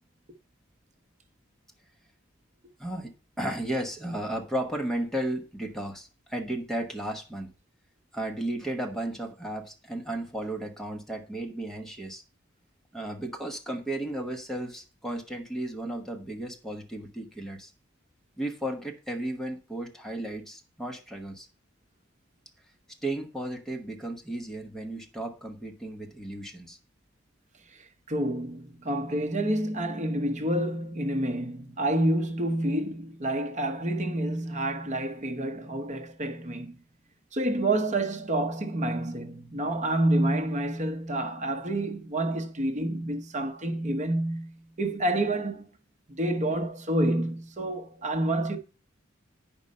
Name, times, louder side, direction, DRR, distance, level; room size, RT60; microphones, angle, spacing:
voice 1, 2.8-3.1 3.4-7.5 8.1-12.2 12.9-17.7 18.4-21.5 23.0-26.8, right 1 dB, ahead, 1.1 m, -34 dB
voice 2, 27.7-36.8 37.3-45.7 46.1-48.6, right 1 dB, 35° right, 1.0 m, -28 dB
8.8 x 5.3 x 5.3 m
head